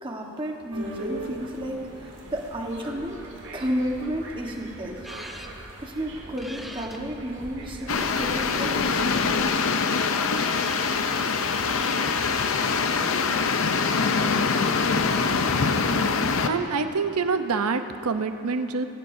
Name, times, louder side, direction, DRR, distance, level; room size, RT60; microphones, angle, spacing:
voice 1, 0.0-3.2 3.5-5.1 5.8-9.1, equal, 20° right, 0 dB, 1.3 m, -32 dB
sound 1, 0.7-9.5, right 1 dB, 55° right, 1.8 m, -41 dB
sound 2, 5.0-5.5 6.4-8.4 9.8-12.7, equal, ahead, 0.6 m, -42 dB
sound 3, 7.9-16.5, left 5 dB, 65° left, 0.6 m, -24 dB
voice 2, 16.5-18.9, right 4 dB, 85° right, 8 dB, 0.7 m, -26 dB
21.0 x 16.5 x 2.7 m, 2.8 s
head